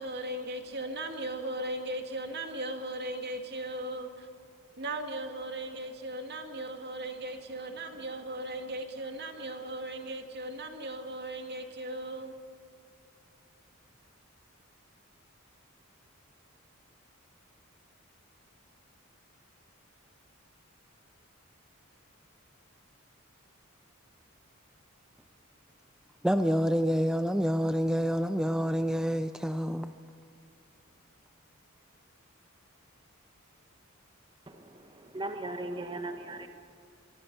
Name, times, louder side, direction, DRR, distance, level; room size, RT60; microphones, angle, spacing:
voice 1, 0.0-4.3 4.8-12.3, right 1 dB, 50° right, 2.2 m, -37 dB
voice 2, 26.2-29.9, equal, 5° right, 0.4 m, -27 dB
voice 3, 34.5-36.5, right 2 dB, 25° right, 1.2 m, -38 dB
25.5 x 23.5 x 5.5 m
head